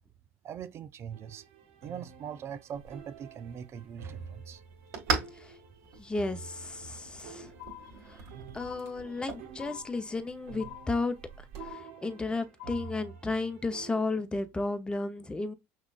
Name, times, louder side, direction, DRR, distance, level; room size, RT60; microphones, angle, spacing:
voice 1, 0.4-1.4 1.8-4.6 8.1-8.3, right 8 dB, 40° right, 0.4 m, -42 dB
sound 1, 1.1-14.0, right 6 dB, 90° right, 0.8 m, -49 dB
sound 2, 2.7-11.7, right 4 dB, 60° right, 1.7 m, -41 dB
voice 2, 6.0-7.5 8.5-11.1 12.0-15.5, left 3 dB, 15° left, 0.7 m, -33 dB
sound 3, 7.6-8.3 8.6-9.3 9.6-10.3 10.6-11.3 11.6-12.3 12.6-13.3, left 14 dB, 85° left, 0.9 m, -47 dB
5.9 x 2.3 x 2.4 m
supercardioid pair, 95°, 7 cm